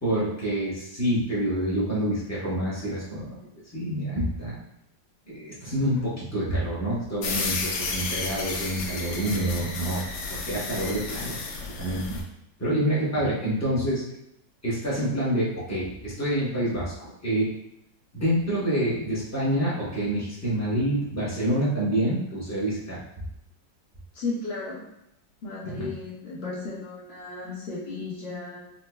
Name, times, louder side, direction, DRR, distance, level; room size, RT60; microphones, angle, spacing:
voice 1, 0.0-3.4 3.7-4.6 5.3-12.2 12.6-14.0 14.6-17.5 18.1-23.0 25.6-25.9, right 1 dB, 20° left, -8 dB, 0.4 m, -27 dB
sound 1, 7.2-12.2, left 4 dB, 90° left, 1.4 m, -32 dB
voice 2, 24.1-24.8 25.4-28.6, left 3 dB, 60° left, -6 dB, 0.6 m, -34 dB
5.2 x 2.1 x 2.2 m, 0.83 s
omnidirectional pair, 2.0 m